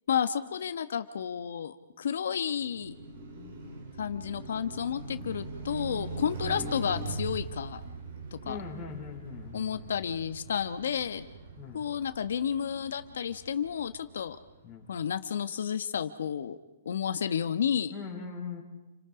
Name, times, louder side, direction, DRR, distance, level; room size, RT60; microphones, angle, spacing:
voice 1, 0.1-2.9 4.0-7.8 8.3-8.6 9.5-11.2 11.7-14.4 14.9-16.6 16.8-17.9, left 8 dB, 65° left, 10 dB, 1.2 m, -31 dB
Car passing by, 2.5-14.7, right 3 dB, 40° right, 3.8 m, -42 dB
voice 2, 6.4-6.7 8.4-10.0 11.6-11.9 14.6-14.9 17.9-18.6, left 6 dB, 10° left, -3 dB, 4.4 m, -41 dB
30.0 x 25.5 x 5.0 m, 1.1 s
hypercardioid pair, 175°, 0 cm